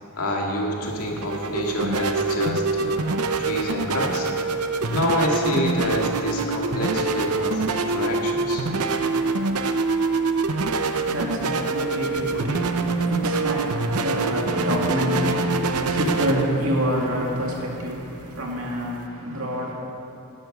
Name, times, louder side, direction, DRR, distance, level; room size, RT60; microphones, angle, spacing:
voice 1, 0.2-3.1 3.4-4.3 4.5-8.6, left 1 dB, 85° left, 0 dB, 2.1 m, -27 dB
sound 1, 0.8-19.1, right 3 dB, 85° right, 0.7 m, -25 dB
voice 2, 10.7-19.7, equal, 65° right, -2 dB, 2.4 m, -27 dB
11.5 x 11.0 x 6.6 m, 2.7 s
head